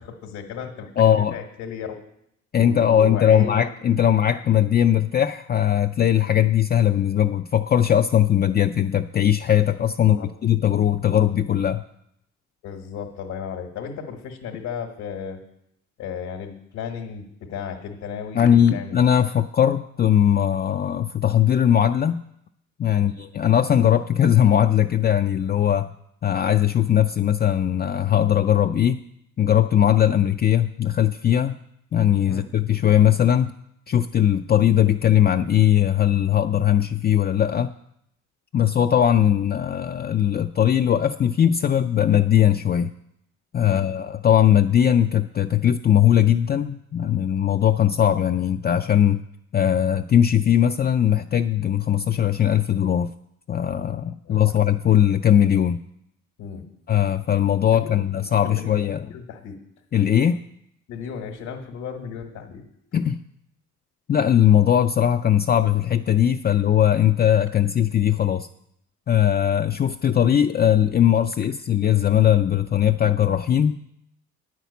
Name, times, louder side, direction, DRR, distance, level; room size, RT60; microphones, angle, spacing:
voice 1, 0.0-0.9 1.2-2.0 2.6-3.6 4.4-4.5 10.1-10.3 12.6-15.4 16.0-19.1 22.9-23.1 32.3-32.4 43.6-43.8 54.2-54.5 56.4-56.6 57.7-59.5 60.9-62.6, left 7 dB, 85° left, 1 dB, 1.4 m, -35 dB
voice 2, 1.0-1.4 2.5-11.8 18.3-22.2 22.8-25.9 26.2-29.0 29.4-31.6 31.9-33.5 33.9-37.7 38.5-42.9 43.5-49.2 49.5-53.1 53.5-55.8 56.9-59.1 59.9-60.4 62.9-63.2 64.1-68.5 69.1-73.8, left 10 dB, 35° left, 7 dB, 0.4 m, -19 dB
9.1 x 6.0 x 8.2 m, 0.75 s
cardioid pair, 90°, 30 cm